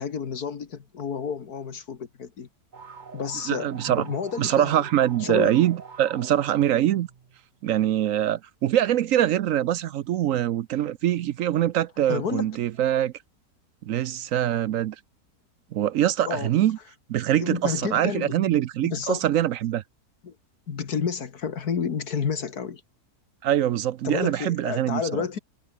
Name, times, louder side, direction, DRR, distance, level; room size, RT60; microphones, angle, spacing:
voice 1, 0.0-2.5 3.1-4.8 5.2-5.6 12.1-12.6 16.2-16.5 17.4-18.6 18.8-19.3 20.2-20.4 20.7-22.8 24.0-25.4, left 6 dB, 80° left, 2.2 m, -30 dB
sound 1, 2.7-7.4, right 5 dB, 35° right, 1.1 m, -44 dB
voice 2, 3.5-4.0 4.4-7.1 7.6-13.1 13.8-15.0 15.7-16.8 17.1-19.8 23.4-25.0, right 11 dB, 65° right, 0.9 m, -23 dB
omnidirectional pair, 1.6 m